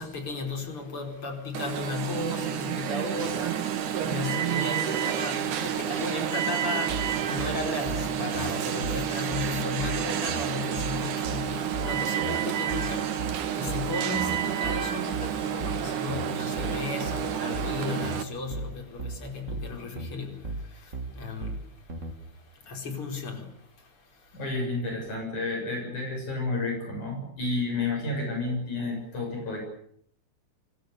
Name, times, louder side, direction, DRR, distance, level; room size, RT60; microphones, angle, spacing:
voice 1, 0.0-21.6 22.6-23.5, left 3 dB, 45° left, 4 dB, 5.7 m, -35 dB
Alarm, 1.5-18.2, right 9 dB, 75° right, 3.0 m, -30 dB
sound 1, 6.9-22.1, right 2 dB, 25° right, 3.0 m, -36 dB
voice 2, 24.3-29.6, left 2 dB, 70° left, 2 dB, 8.5 m, -30 dB
26.0 x 23.5 x 6.9 m, 0.67 s
omnidirectional pair, 3.6 m